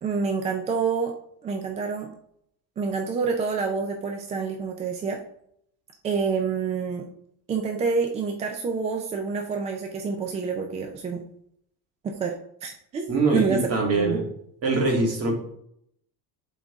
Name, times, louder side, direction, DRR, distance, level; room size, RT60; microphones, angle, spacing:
voice 1, 0.0-1.1 1.4-2.1 2.8-5.2 6.0-7.1 7.5-11.2 12.0-13.1 13.3-14.2, right 5 dB, 20° right, 3 dB, 0.3 m, -28 dB
voice 2, 13.1-14.2 14.6-15.3, right 3 dB, 35° right, 0 dB, 1.9 m, -23 dB
11.0 x 3.8 x 3.5 m, 0.72 s
cardioid pair, 165°, 41 cm